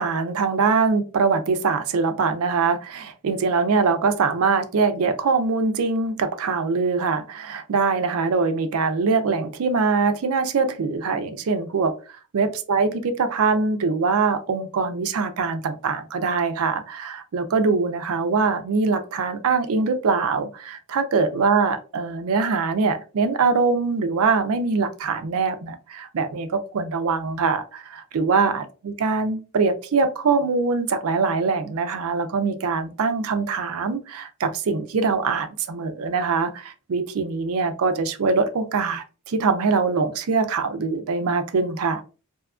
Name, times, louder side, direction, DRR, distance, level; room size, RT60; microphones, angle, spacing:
voice 1, 0.0-42.0, right 4 dB, 70° right, 0.4 m, -23 dB
2.8 x 2.3 x 2.3 m
head